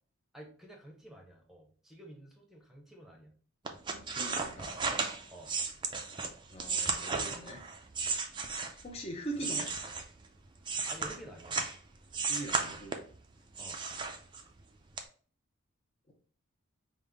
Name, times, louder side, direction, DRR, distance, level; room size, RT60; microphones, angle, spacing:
voice 1, 0.3-3.3 5.3-5.5 9.4-9.9 10.9-11.6 13.6-13.8, right 1 dB, ahead, 0 dB, 0.8 m, -51 dB
sound 1, 3.6-8.9 9.3-11.8 12.1-13.2 13.6-14.6 15.0-15.1, right 4 dB, 20° right, 0.4 m, -34 dB
voice 2, 3.9-4.8 6.5-7.6 8.8-9.7 12.3-12.9 16.1-16.2, right 1 dB, 30° left, 1 dB, 0.6 m, -42 dB
5.2 x 2.1 x 3.4 m, 0.43 s
head